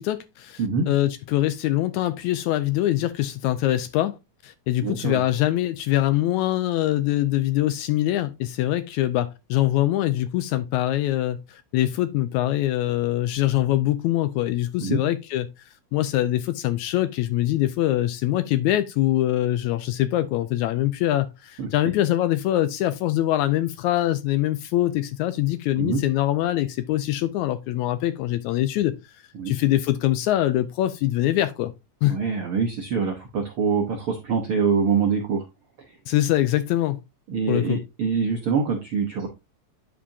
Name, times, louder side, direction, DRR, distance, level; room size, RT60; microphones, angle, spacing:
voice 1, 0.0-4.2 4.4-15.5 15.9-28.9 29.5-31.7 32.0-32.2 36.1-37.0 37.5-37.8, left 14 dB, 80° left, 1.7 m, -23 dB
voice 2, 4.8-5.2 14.8-15.0 21.6-21.7 25.8-26.0 29.4-29.6 32.1-35.4 35.9-36.0 37.3-39.3, right 5 dB, 60° right, 1.5 m, -24 dB
10.0 x 5.1 x 2.7 m
omnidirectional pair, 3.8 m